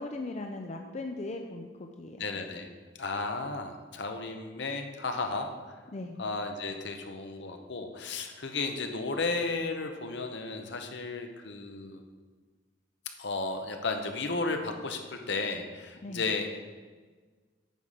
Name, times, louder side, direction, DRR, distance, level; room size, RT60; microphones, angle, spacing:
voice 1, 0.0-2.3 5.9-6.2 16.0-16.2, left 2 dB, 35° left, 3 dB, 0.5 m, -38 dB
voice 2, 2.2-2.7 3.0-5.8 6.2-12.0 13.2-16.5, left 3 dB, 65° left, 5 dB, 0.9 m, -34 dB
9.1 x 4.9 x 5.8 m, 1.4 s
head